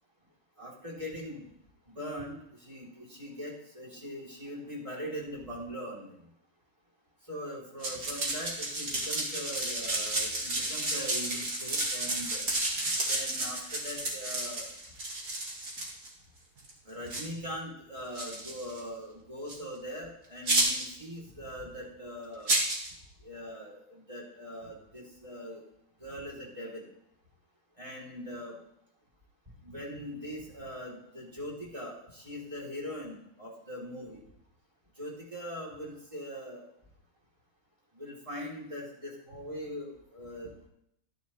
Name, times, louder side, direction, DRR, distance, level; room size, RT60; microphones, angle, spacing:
voice 1, 0.6-1.5 1.9-6.2 7.3-12.4 13.1-14.7 16.8-22.5 23.2-25.6 26.0-26.9 27.8-28.5 29.6-34.2 35.0-36.6 37.9-40.5, equal, 20° right, -4 dB, 3.1 m, -41 dB
sound 1, 7.8-16.1 16.6-16.7 17.1-17.2 18.2-18.8 19.5-19.6 20.5-21.0 22.5-22.9, right 2 dB, 90° right, 2.7 m, -31 dB
14.5 x 9.9 x 3.1 m, 0.74 s
omnidirectional pair, 1.5 m